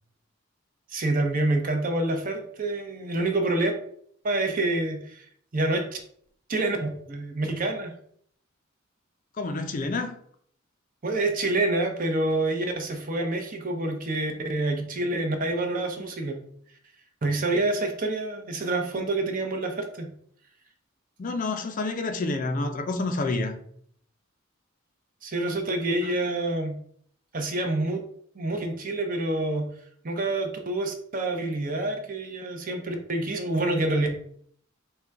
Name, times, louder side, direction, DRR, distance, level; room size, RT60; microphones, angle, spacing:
voice 1, 0.9-3.7 4.2-5.2 5.5-6.0 6.5-7.9 11.0-16.4 17.2-20.1 25.2-26.8 27.3-28.0 28.3-29.7 30.0-34.1, right 2 dB, 45° right, 0.6 m, -27 dB
voice 2, 9.4-10.2 21.2-23.6 26.0-26.1, left 3 dB, 40° left, 0.4 m, -28 dB
3.8 x 2.2 x 4.5 m
head